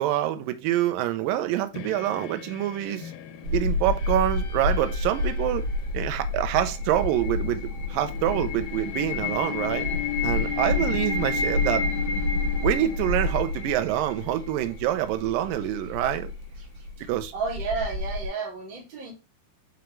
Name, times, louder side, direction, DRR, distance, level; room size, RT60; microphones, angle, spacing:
voice 1, 0.0-3.1 3.5-5.6 5.9-9.9 10.2-11.9 12.6-16.3 17.1-17.3, right 13 dB, 80° right, 2.2 m, -26 dB
sound 1, 1.7-13.8, left 11 dB, 90° left, 2.7 m, -37 dB
sound 2, 3.4-18.3, left 2 dB, 60° right, 2.8 m, -30 dB
sound 3, 5.8-14.8, left 3 dB, 60° left, 2.5 m, -34 dB
voice 2, 17.0-19.1, right 4 dB, 35° right, 2.6 m, -32 dB
5.8 x 5.2 x 3.1 m
omnidirectional pair, 4.5 m